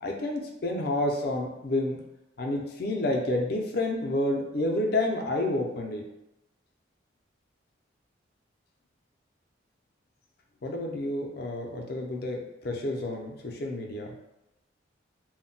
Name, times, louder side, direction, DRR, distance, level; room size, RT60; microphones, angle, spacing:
voice 1, 0.0-2.0 2.4-6.0 10.6-14.1, left 1 dB, 55° left, 1 dB, 0.5 m, -29 dB
2.1 x 2.1 x 3.8 m, 0.90 s
head